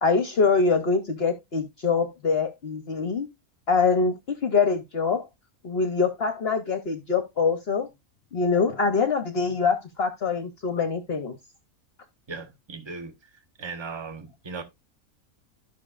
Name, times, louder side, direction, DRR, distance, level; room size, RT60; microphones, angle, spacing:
voice 1, 0.0-3.3 3.7-5.3 5.6-7.9 8.3-11.4, left 4 dB, 50° left, 0.9 m, -24 dB
voice 2, 12.3-13.2 13.6-14.6, right 4 dB, 20° right, 0.9 m, -37 dB
12.0 x 6.1 x 2.4 m
omnidirectional pair, 1.5 m